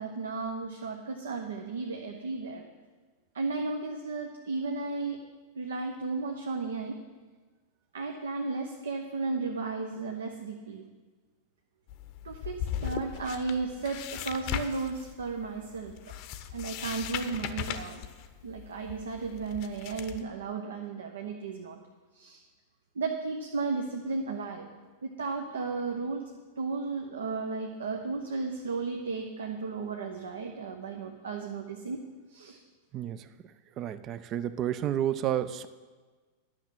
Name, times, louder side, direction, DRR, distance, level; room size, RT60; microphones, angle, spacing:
voice 1, 0.0-2.7 3.3-5.2 5.6-7.0 7.9-10.8 12.2-15.9 16.5-18.0 18.4-21.8 22.1-22.4 22.9-24.7 25.0-26.2 26.6-32.0 32.3-32.6, right 4 dB, 65° right, 3 dB, 0.9 m, -34 dB
sound 1, 11.9-20.2, left 10 dB, 45° left, 0.7 m, -38 dB
voice 2, 32.9-33.3 33.8-35.7, right 11 dB, 35° right, 14 dB, 0.5 m, -31 dB
11.0 x 6.2 x 7.5 m, 1.3 s
figure-of-eight pair, 90°, 0 cm